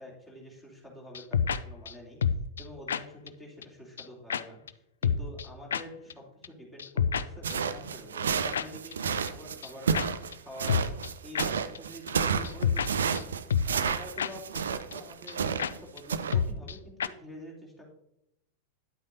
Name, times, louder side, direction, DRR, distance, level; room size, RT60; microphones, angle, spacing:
voice 1, 0.0-2.2 2.6-4.6 5.0-10.9 11.2-13.2 13.7-17.9, equal, 15° left, -3 dB, 3.1 m, -47 dB
sound 1, 1.1-1.6 1.8-1.9 2.2-2.6 2.9-3.0 3.3-3.4 3.6-3.7 4.0-4.1 4.3-4.4 4.7-4.8 5.0-5.5 5.7-5.8 6.1-6.2 6.4-6.5 6.8-7.2 7.5-7.6 8.5-8.7 8.9-9.0 9.3-9.4 9.6-9.7 9.9-10.1 10.3-10.4 10.7-11.1 11.3-11.5 11.7-11.8 12.1-12.2 12.4-12.9 13.1-13.2 13.5-13.9 14.2-14.3 14.6-14.7 14.9-15.0 15.3-15.4 15.6-15.7 16.0-16.1 16.3-16.7 17.0-17.1, left 7 dB, 65° left, 0.3 m, -28 dB
sound 2, 7.4-15.8 16.1-16.3, right 6 dB, 65° right, 0.5 m, -31 dB
10.0 x 8.2 x 2.7 m, 0.83 s
figure-of-eight pair, 90°, 0 cm